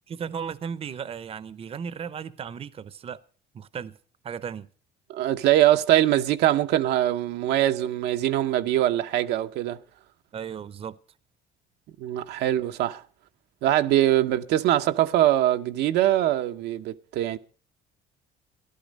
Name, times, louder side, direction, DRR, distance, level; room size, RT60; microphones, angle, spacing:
voice 1, 0.1-3.2 3.5-4.0 4.2-4.7 10.3-11.0, right 7 dB, 35° right, 0.6 m, -35 dB
voice 2, 5.1-9.8 12.0-13.0 13.6-17.4, right 13 dB, 80° right, 0.7 m, -22 dB
14.0 x 11.5 x 5.2 m
cardioid pair, 110°, 17 cm